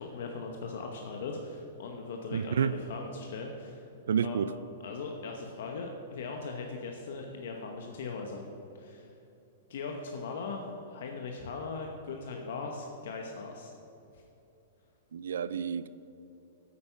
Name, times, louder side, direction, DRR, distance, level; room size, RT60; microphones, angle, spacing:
voice 1, 0.0-3.8 4.2-4.5 4.8-8.5 8.7-9.1 9.7-13.7 14.1-14.2, left 4 dB, 55° left, 2 dB, 0.9 m, -39 dB
voice 2, 2.3-2.7 4.1-4.5 15.1-15.9, right 7 dB, 85° right, 15 dB, 0.3 m, -29 dB
9.0 x 8.5 x 5.7 m, 2.8 s
supercardioid pair, 175°, 0 cm